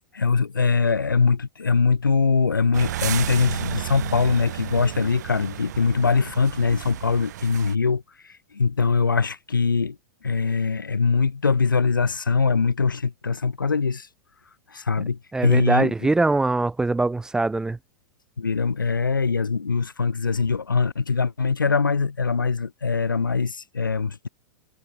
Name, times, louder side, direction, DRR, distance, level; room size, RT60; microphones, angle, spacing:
voice 1, 0.1-10.0 10.2-14.1 14.7-16.1 18.4-24.3, left 5 dB, 85° left, 0.4 m, -22 dB
sound 1, 2.7-7.8, right 13 dB, 60° right, 1.8 m, -32 dB
voice 2, 15.3-17.8, right 2 dB, 5° right, 0.3 m, -22 dB
figure-of-eight pair, 95°, 11 cm